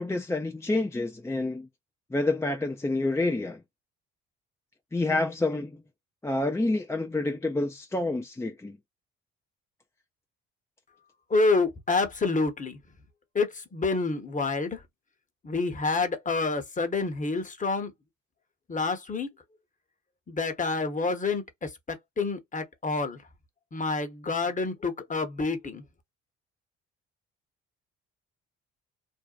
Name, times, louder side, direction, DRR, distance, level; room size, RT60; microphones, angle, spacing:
voice 1, 0.0-1.7 2.1-3.6 4.9-5.7 6.2-8.7, left 2 dB, 10° left, 0.4 m, -28 dB
voice 2, 11.3-12.8 13.3-14.8 15.4-17.9 18.7-19.3 20.3-23.2 23.7-25.8, left 3 dB, 25° left, 1.0 m, -28 dB
2.6 x 2.1 x 2.4 m
hypercardioid pair, 55°, 29 cm